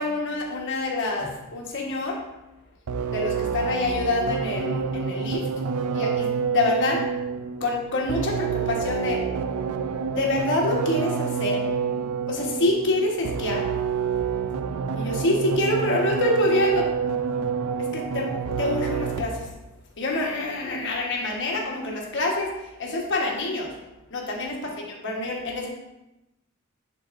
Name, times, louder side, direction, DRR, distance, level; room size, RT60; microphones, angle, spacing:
voice 1, 0.0-2.2 3.1-5.5 5.9-7.1 7.6-9.3 10.1-11.6 12.3-13.7 14.9-16.9 17.8-18.3 18.6-19.5 20.0-23.7 24.1-25.7, left 2 dB, 60° left, 0 dB, 1.2 m, -26 dB
sound 1, 2.9-19.5, right 6 dB, 90° right, 0.4 m, -28 dB
10.0 x 4.0 x 2.5 m, 0.96 s
head